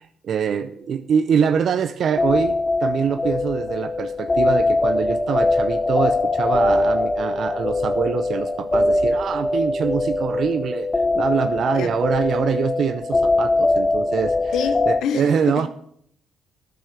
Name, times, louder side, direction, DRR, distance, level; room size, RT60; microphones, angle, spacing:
voice 1, 0.2-2.6 2.8-10.9 11.1-14.5 14.9-15.7, right 7 dB, 60° right, 0.6 m, -24 dB
sound 1, 2.2-15.0, left 2 dB, 25° left, 0.8 m, -22 dB
voice 2, 14.5-15.7, left 7 dB, 80° left, 1.0 m, -27 dB
9.5 x 6.9 x 7.8 m
cardioid pair, 90°, 0 cm